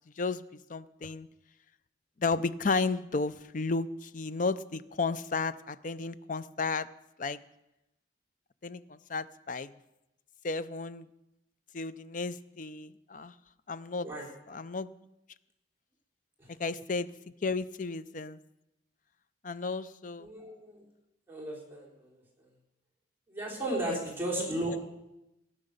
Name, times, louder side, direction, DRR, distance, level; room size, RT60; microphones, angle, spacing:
voice 1, 0.7-1.3 2.2-6.9 7.2-7.4 8.6-9.7 10.4-11.1 11.7-13.3 13.7-14.1 14.5-14.9 16.6-17.1 17.4-18.4 19.4-20.3 23.9-24.0 24.4-24.8, left 4 dB, 45° left, 14 dB, 0.6 m, -33 dB
voice 2, 20.2-20.9 21.3-22.2 23.3-24.8, right 1 dB, 10° right, -3 dB, 3.8 m, -35 dB
16.0 x 9.8 x 6.7 m, 0.93 s
head